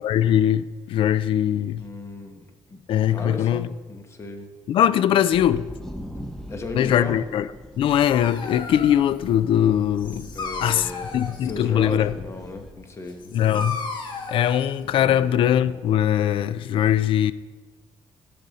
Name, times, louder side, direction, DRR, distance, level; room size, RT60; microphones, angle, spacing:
voice 1, 0.0-1.8 2.9-3.7 4.7-5.7 6.7-7.5 7.8-10.3 10.6-12.1 13.3-13.8 14.3-17.3, left 10 dB, 75° left, 0.4 m, -21 dB
voice 2, 1.8-4.5 6.5-7.2 10.3-13.7 14.8-15.4, left 2 dB, 30° left, 1.0 m, -36 dB
sound 1, 5.3-12.7, equal, 5° left, 0.8 m, -42 dB
Dog, 7.7-15.6, left 4 dB, 60° left, 1.2 m, -36 dB
14.0 x 5.1 x 4.0 m
cardioid pair, 135°, 9 cm